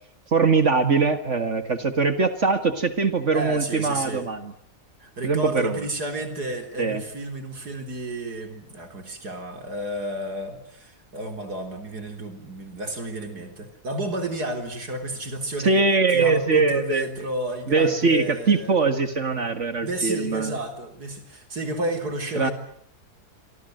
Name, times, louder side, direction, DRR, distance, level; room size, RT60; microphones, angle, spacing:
voice 1, 0.3-4.5 5.2-5.9 6.8-7.0 15.6-17.1 17.7-20.5 22.4-22.5, right 4 dB, 50° right, 10 dB, 2.1 m, -22 dB
voice 2, 3.3-4.3 5.0-15.8 16.1-18.8 19.8-22.5, right 1 dB, 90° right, 6 dB, 4.5 m, -31 dB
28.5 x 25.0 x 7.9 m, 0.64 s
omnidirectional pair, 1.6 m